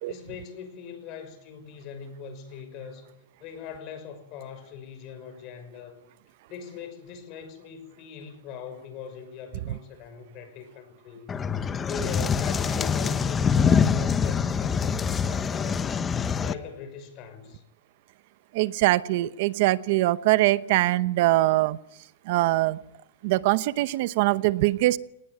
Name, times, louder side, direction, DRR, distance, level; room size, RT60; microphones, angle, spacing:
voice 1, 0.1-3.1 3.4-6.0 6.5-11.3 11.8-16.0 16.4-17.6, left 7 dB, 45° left, 10 dB, 5.9 m, -41 dB
sound 1, 11.3-16.5, left 6 dB, 20° left, 1.0 m, -25 dB
voice 2, 18.5-21.8 22.3-22.8 23.2-25.0, right 17 dB, 60° right, 16 dB, 0.8 m, -22 dB
24.5 x 19.5 x 9.6 m, 0.84 s
supercardioid pair, 140°, 0 cm